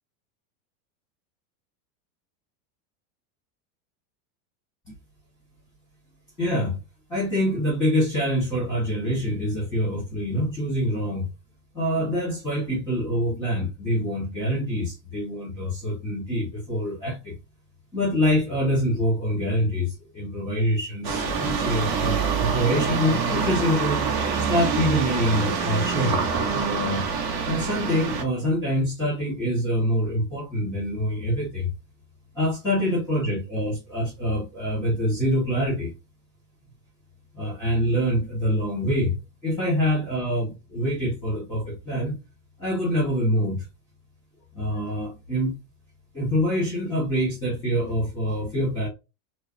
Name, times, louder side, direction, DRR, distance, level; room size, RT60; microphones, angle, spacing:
voice 1, 6.4-6.8 7.1-11.3 11.7-17.3 17.9-24.0 24.4-27.0 27.4-31.7 32.3-35.9 37.3-39.2 39.4-42.1 42.6-43.7 44.5-45.6 46.1-48.9, equal, 5° left, 1.4 m, -25 dB
sound 1, 21.0-28.2, right 5 dB, 30° right, 0.7 m, -26 dB
4.7 x 2.1 x 3.1 m
supercardioid pair, 180°, 45 cm